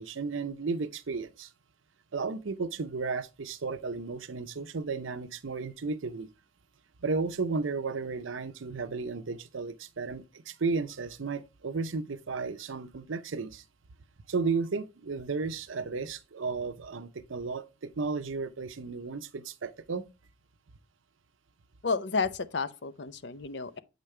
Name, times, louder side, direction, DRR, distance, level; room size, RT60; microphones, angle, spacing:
voice 1, 0.0-1.5 2.1-6.3 7.0-13.6 14.3-20.0, right 4 dB, 85° right, 0.7 m, -34 dB
voice 2, 21.8-23.8, left 4 dB, 60° left, 0.6 m, -31 dB
8.0 x 5.1 x 3.2 m
head